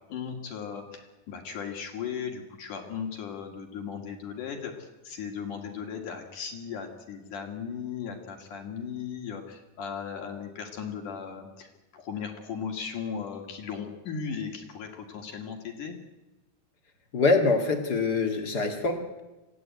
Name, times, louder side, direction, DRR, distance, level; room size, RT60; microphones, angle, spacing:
voice 1, 0.1-16.0, left 6 dB, 60° left, 3 dB, 3.3 m, -37 dB
voice 2, 17.1-19.2, left 3 dB, 35° left, 5 dB, 1.9 m, -25 dB
25.5 x 16.0 x 9.4 m, 1.1 s
omnidirectional pair, 4.2 m